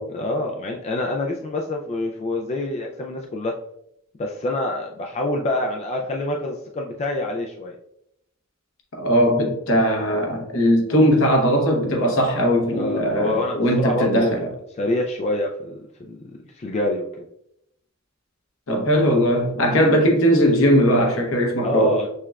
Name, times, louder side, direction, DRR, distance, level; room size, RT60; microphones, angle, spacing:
voice 1, 0.1-3.6 4.2-7.8 12.7-14.4 14.8-16.2 16.5-17.2 19.7-19.8 21.6-22.1, left 2 dB, 30° left, 1 dB, 0.3 m, -26 dB
voice 2, 8.9-14.5 18.7-22.0, equal, 75° left, 2 dB, 0.9 m, -19 dB
6.4 x 2.3 x 2.2 m, 0.78 s
head